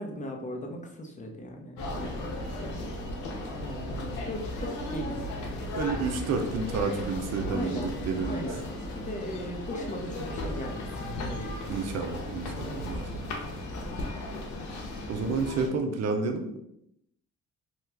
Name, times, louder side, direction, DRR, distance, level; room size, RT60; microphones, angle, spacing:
voice 1, 0.0-2.4 3.5-5.2 7.5-8.7 8.9-11.9 12.5-12.9 13.9-14.1, left 1 dB, 25° left, 1 dB, 0.7 m, -38 dB
sound 1, 1.8-15.7, left 1 dB, 80° left, 0.8 m, -36 dB
voice 2, 5.7-8.5 11.7-13.3 15.1-16.6, right 4 dB, 60° right, 5 dB, 0.6 m, -30 dB
2.9 x 2.3 x 3.3 m, 0.79 s
cardioid pair, 90°, 30 cm